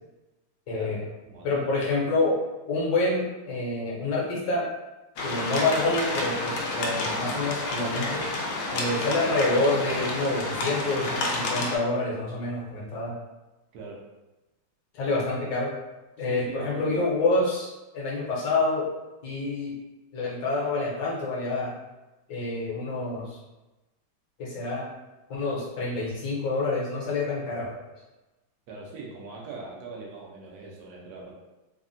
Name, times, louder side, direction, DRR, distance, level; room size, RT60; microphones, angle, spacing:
voice 1, 0.7-1.0 1.4-2.4 2.7-4.6 5.2-8.2 8.7-13.1 14.9-15.7 16.2-18.9 19.2-19.7 20.1-21.7 22.3-23.4 24.4-24.9 25.3-27.7, left 2 dB, 65° left, -5 dB, 1.2 m, -27 dB
voice 2, 1.2-1.7 13.7-14.1 16.2-17.1 28.7-31.3, right 3 dB, 75° right, -3 dB, 0.9 m, -41 dB
sound 1, 5.2-11.8, left 2 dB, 85° left, 0.8 m, -30 dB
3.5 x 2.1 x 2.5 m, 1.1 s
omnidirectional pair, 2.3 m